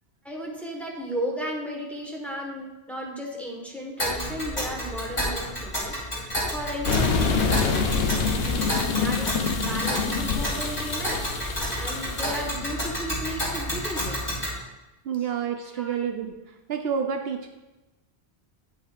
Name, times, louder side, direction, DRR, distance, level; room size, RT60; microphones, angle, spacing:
voice 1, 0.2-11.2 11.8-14.3 15.2-15.3 15.7-16.0, equal, ahead, -1 dB, 1.3 m, -35 dB
Tick, 4.0-14.5, equal, 40° left, 2.6 m, -30 dB
sound 1, 6.9-12.5, left 5 dB, 65° left, 1.0 m, -26 dB
voice 2, 15.1-16.3 16.7-17.5, right 7 dB, 70° right, 5 dB, 0.8 m, -28 dB
8.8 x 8.4 x 2.5 m, 1.1 s
omnidirectional pair, 1.1 m